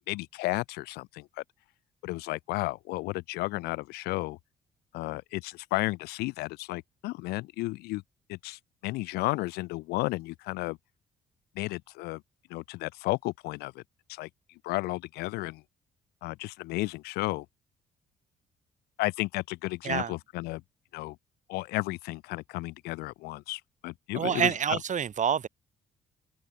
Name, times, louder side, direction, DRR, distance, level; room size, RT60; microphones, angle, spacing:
voice 1, 0.1-1.4 2.0-4.4 4.9-8.0 8.3-10.8 11.5-12.2 12.5-13.8 14.1-14.3 14.6-15.6 16.2-17.4 19.0-20.6 20.9-21.2 21.5-24.8, left 21 dB, 75° left, 1.3 m, -33 dB
voice 2, 24.1-25.5, right 8 dB, 50° right, 1.6 m, -27 dB
open air
hypercardioid pair, 45°, 17 cm